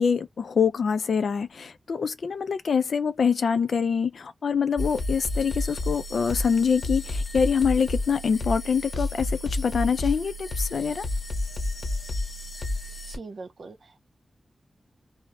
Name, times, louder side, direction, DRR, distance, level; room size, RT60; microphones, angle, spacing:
voice 1, 0.0-11.1, left 6 dB, 85° left, 0.3 m, -25 dB
sound 1, 4.8-13.2, left 2 dB, 50° left, 1.3 m, -30 dB
voice 2, 13.0-14.0, right 3 dB, 70° right, 0.5 m, -42 dB
2.7 x 2.0 x 2.8 m
wide cardioid pair, 95°, 0 cm